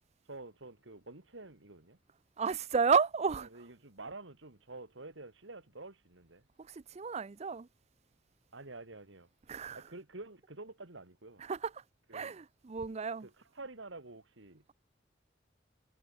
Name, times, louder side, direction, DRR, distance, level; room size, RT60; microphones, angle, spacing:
voice 1, 0.3-2.0 3.5-6.5 8.5-9.3 9.7-11.5 12.1-12.4 13.2-14.6, right 2 dB, 85° right, 2.5 m, -49 dB
voice 2, 2.4-3.5 6.6-7.7 9.5-9.8 11.4-11.8 12.1-13.3, right 5 dB, 35° right, 0.5 m, -32 dB
head